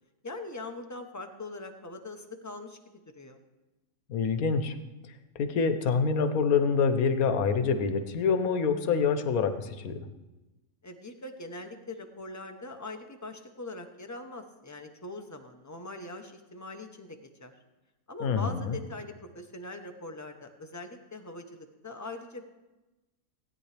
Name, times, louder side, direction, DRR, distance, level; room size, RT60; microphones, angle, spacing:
voice 1, 0.2-2.8 3.1-3.4 10.8-17.5 18.1-22.4, left 2 dB, 15° left, 5 dB, 0.7 m, -42 dB
voice 2, 4.1-4.7 5.4-10.0 18.2-18.8, left 5 dB, 85° left, 9 dB, 1.3 m, -26 dB
16.5 x 9.4 x 3.3 m, 1.1 s
omnidirectional pair, 1.5 m